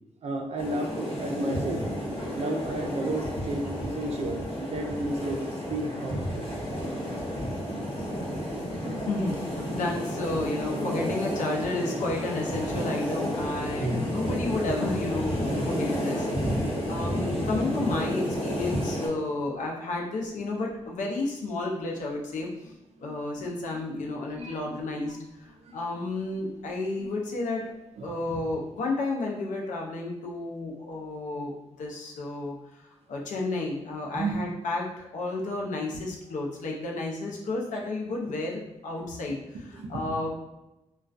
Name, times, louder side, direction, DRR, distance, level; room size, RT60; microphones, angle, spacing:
voice 1, 0.2-1.9 2.3-5.4 5.7-6.5 13.8-14.2 23.0-23.5 24.0-24.8 25.7-25.8 27.0-27.1 28.0-28.4 34.1-34.4 39.7-40.0, right 2 dB, 60° right, 3 dB, 0.4 m, -33 dB
sound 1, 0.6-19.1, equal, 50° left, 1.1 m, -31 dB
voice 2, 9.0-22.7 23.0-27.6 28.0-32.8 33.1-34.9 35.1-40.3, left 2 dB, 90° left, 0 dB, 0.5 m, -32 dB
2.3 x 2.2 x 2.4 m, 0.99 s
cardioid pair, 100°, 12 cm